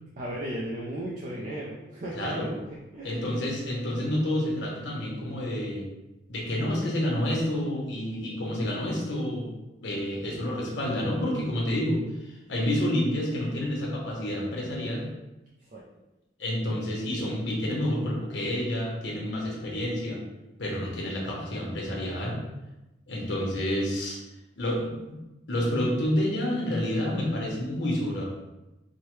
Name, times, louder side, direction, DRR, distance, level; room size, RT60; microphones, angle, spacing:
voice 1, 0.2-2.3 2.9-3.4 15.6-15.8, right 1 dB, 45° right, -5 dB, 0.4 m, -35 dB
voice 2, 2.1-2.5 3.0-5.9 6.3-9.5 9.8-12.0 12.5-15.1 16.4-20.2 20.6-22.4 23.1-24.2 24.6-25.2 25.5-28.2, left 1 dB, 85° left, -2 dB, 1.0 m, -29 dB
4.5 x 2.2 x 3.1 m, 1.0 s
head